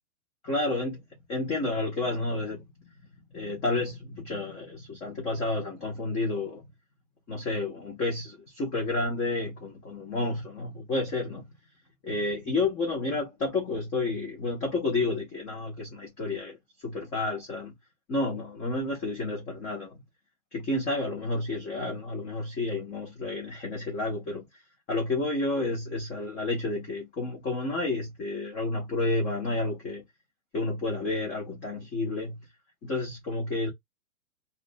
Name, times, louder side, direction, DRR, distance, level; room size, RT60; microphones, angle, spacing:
voice 1, 0.4-1.0 1.3-2.6 3.3-6.6 7.3-11.4 12.0-17.7 18.1-20.0 20.5-24.6 24.9-30.0 30.5-32.4 32.8-33.7, left 2 dB, 15° left, 0.6 m, -30 dB
2.4 x 2.2 x 2.4 m
hypercardioid pair, 140°, 42 cm